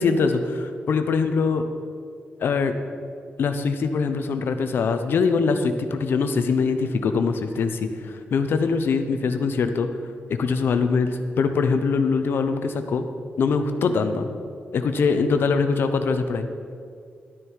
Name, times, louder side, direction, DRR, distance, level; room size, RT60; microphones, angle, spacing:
voice 1, 0.0-1.6 2.4-2.7 3.4-9.9 10.3-13.0 13.4-14.4 14.7-16.5, left 5 dB, 65° left, 8 dB, 0.8 m, -23 dB
12.0 x 10.0 x 4.7 m, 2.3 s
wide cardioid pair, 175°, 4 cm